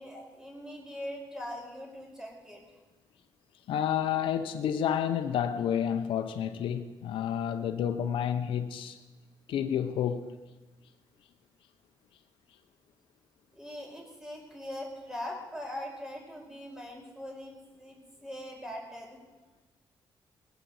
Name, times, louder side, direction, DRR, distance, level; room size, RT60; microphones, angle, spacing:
voice 1, 0.0-2.6 13.5-19.2, left 1 dB, 5° right, 5.0 m, -41 dB
voice 2, 3.7-9.0 9.5-10.4, left 9 dB, 90° left, 0.8 m, -30 dB
20.0 x 8.4 x 7.8 m
cardioid pair, 90°, 9 cm